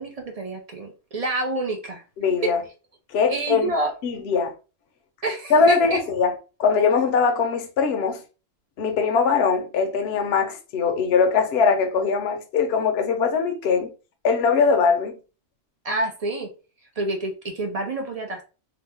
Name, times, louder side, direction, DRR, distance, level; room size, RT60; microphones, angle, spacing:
voice 1, 0.0-2.0 2.4-2.5 3.3-3.9 5.2-6.0 15.8-16.5 17.0-18.4, right 2 dB, 45° right, 0.5 m, -28 dB
voice 2, 2.2-2.6 3.1-3.7 4.0-4.5 5.5-6.3 6.6-8.2 8.8-13.9 14.2-15.2, left 5 dB, 60° left, 0.8 m, -21 dB
2.9 x 2.2 x 3.3 m
omnidirectional pair, 1.3 m